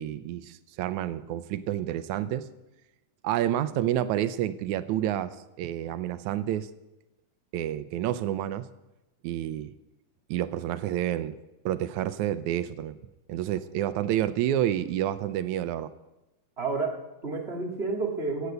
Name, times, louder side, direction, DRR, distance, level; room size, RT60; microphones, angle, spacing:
voice 1, 0.0-2.5 3.2-6.7 7.5-8.7 9.2-9.7 10.3-11.4 11.7-13.0 13.3-15.9, right 12 dB, 90° right, 13 dB, 2.1 m, -29 dB
voice 2, 16.6-18.5, right 3 dB, 25° right, 1 dB, 2.0 m, -30 dB
16.5 x 8.2 x 8.0 m, 0.99 s
omnidirectional pair, 3.3 m